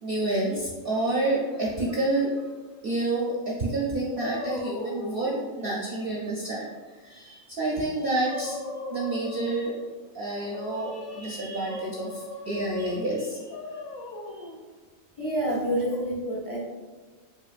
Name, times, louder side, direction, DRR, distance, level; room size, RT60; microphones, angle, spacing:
voice 1, 0.0-2.5 2.8-6.7 7.0-8.6 8.9-9.8 10.1-13.8 14.4-14.5, right 2 dB, 60° right, -4 dB, 0.6 m, -29 dB
sound 1, 4.2-5.3 7.7-7.8 8.2-9.9 10.4-11.2 11.7-13.0 13.5-14.6 15.4-16.0, left 2 dB, 85° left, 1.0 m, -37 dB
voice 2, 15.2-16.6, right 1 dB, 25° left, -6 dB, 0.7 m, -28 dB
4.7 x 2.6 x 2.4 m, 1.3 s
omnidirectional pair, 1.4 m